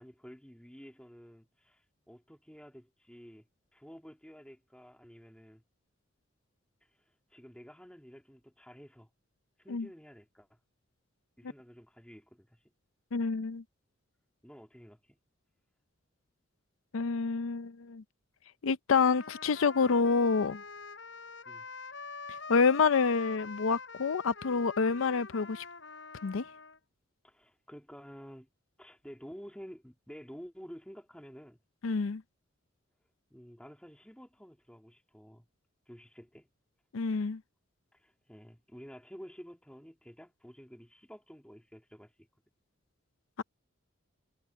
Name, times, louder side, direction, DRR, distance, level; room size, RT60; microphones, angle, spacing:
voice 1, 0.0-5.6 6.8-6.9 7.3-9.1 9.6-10.6 11.4-12.6 14.4-15.2 21.5-21.7 22.2-22.3 27.2-28.5 28.8-31.6 33.3-35.5 35.9-36.5 37.9-42.3, equal, 5° left, 2.4 m, -51 dB
voice 2, 13.1-13.6 16.9-18.0 18.6-20.6 22.5-25.7 26.2-26.4 31.8-32.2 36.9-37.4, left 5 dB, 85° left, 0.5 m, -28 dB
sound 1, 19.0-26.8, left 4 dB, 65° left, 5.7 m, -45 dB
head